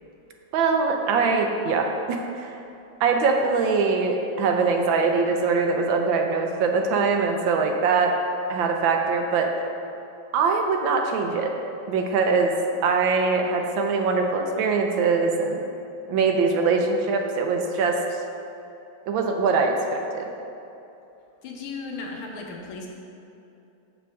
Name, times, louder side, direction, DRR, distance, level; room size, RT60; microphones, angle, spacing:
voice 1, 0.5-2.6 3.0-8.1 8.5-9.5 10.3-11.5 11.9-12.5 12.8-15.6 16.1-18.0 19.1-20.3, right 4 dB, 75° right, 3 dB, 1.4 m, -22 dB
voice 2, 21.4-22.9, left 4 dB, 85° left, 0 dB, 1.8 m, -35 dB
6.8 x 4.4 x 6.2 m, 2.8 s
omnidirectional pair, 2.3 m